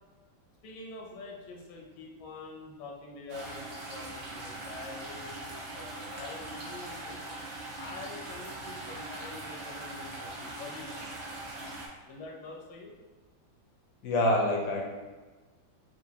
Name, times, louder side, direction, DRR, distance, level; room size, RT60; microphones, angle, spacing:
voice 1, 0.6-7.2 7.8-11.1 12.0-12.9, left 3 dB, 85° left, -1 dB, 1.5 m, -45 dB
sound 1, 3.3-11.9, right 2 dB, 80° right, 1.6 m, -41 dB
voice 2, 14.0-14.9, left 1 dB, 65° left, 0 dB, 0.9 m, -26 dB
6.1 x 2.6 x 2.7 m, 1.3 s
omnidirectional pair, 2.1 m